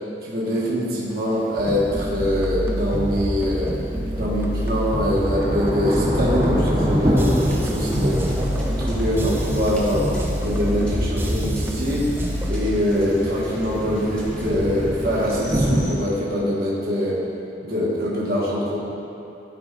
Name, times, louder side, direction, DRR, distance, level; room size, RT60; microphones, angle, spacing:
voice 1, 0.2-3.7 4.2-8.2 8.6-12.1 12.5-17.2 17.6-18.8, equal, 55° right, -7 dB, 1.3 m, -23 dB
Thunder / Rain, 1.1-1.2 4.1-15.8, equal, 30° right, 0.8 m, -27 dB
sound 1, 1.6-12.5, equal, 15° right, 0.4 m, -27 dB
sound 2, 6.0-16.0, equal, 5° left, 1.0 m, -32 dB
12.0 x 5.1 x 2.5 m, 2.9 s
head